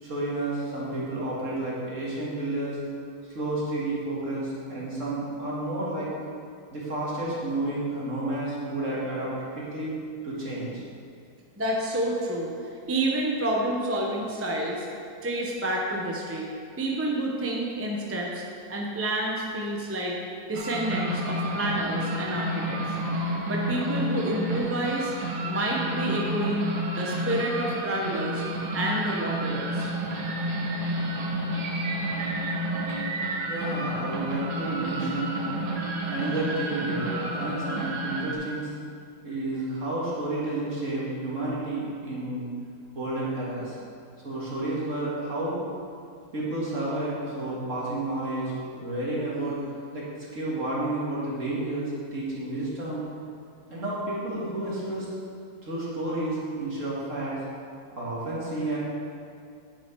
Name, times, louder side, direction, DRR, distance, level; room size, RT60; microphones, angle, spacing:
voice 1, 0.0-2.8 3.3-6.1 6.7-10.8 33.5-35.4 36.1-38.7 39.2-42.5 42.9-43.8 44.2-45.6 46.3-49.5 49.9-50.1 50.3-53.1 53.7-55.1 55.6-57.4 57.9-58.8, right 2 dB, 45° right, -7 dB, 2.3 m, -31 dB
voice 2, 11.6-12.5 12.9-14.9 15.2-16.5 16.8-18.4 18.7-20.2 20.5-22.8 23.5-25.1 25.4-26.7 26.9-28.4 28.7-29.9, right 1 dB, 15° right, -2 dB, 0.5 m, -29 dB
sound 1, 20.5-38.3, right 1 dB, 65° right, 1.6 m, -30 dB
9.9 x 6.4 x 4.7 m, 2.4 s
omnidirectional pair, 1.9 m